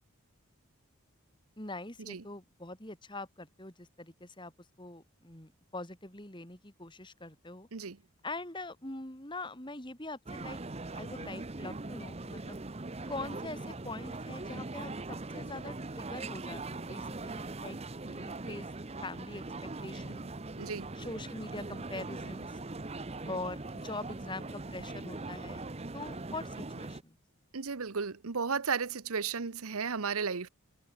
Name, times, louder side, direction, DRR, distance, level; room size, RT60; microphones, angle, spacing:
voice 1, 1.6-4.5 4.8-7.7 8.2-10.6 10.9-12.6 13.1-18.7 19.0-20.3 21.0-22.5 23.2-25.6 25.9-27.1, left 2 dB, 20° left, 2.9 m, -43 dB
sound 1, 10.3-27.0, right 2 dB, 30° right, 0.8 m, -41 dB
voice 2, 20.6-20.9 27.5-30.5, right 5 dB, 80° right, 0.9 m, -34 dB
head